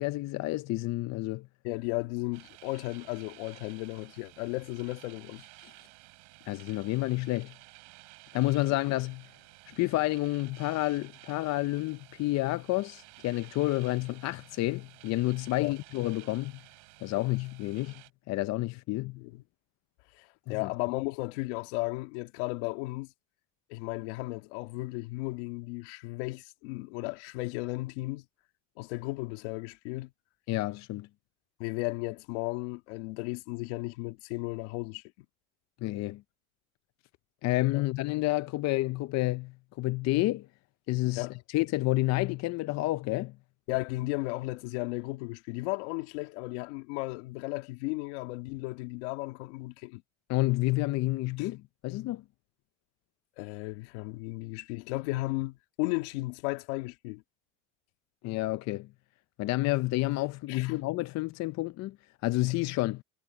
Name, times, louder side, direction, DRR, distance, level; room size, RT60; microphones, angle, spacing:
voice 1, 0.0-1.5 5.6-5.7 6.5-7.5 8.3-9.2 9.8-16.6 17.0-18.0 18.3-19.2 20.5-20.7 30.5-31.1 35.8-36.2 37.4-40.5 40.9-43.3 50.3-52.2 58.2-58.9 59.4-62.0 62.2-63.0, left 19 dB, 50° left, 0.6 m, -29 dB
voice 2, 1.6-5.5 15.6-15.8 17.2-17.3 19.2-19.4 20.1-23.1 23.7-28.2 28.8-30.1 31.6-35.3 37.7-37.8 41.1-41.3 43.7-50.0 51.4-51.5 53.4-57.2 60.5-60.8, left 22 dB, 80° left, 2.5 m, -35 dB
sound 1, 2.3-18.1, right 32 dB, 80° right, 3.4 m, -54 dB
supercardioid pair, 105°, 34 cm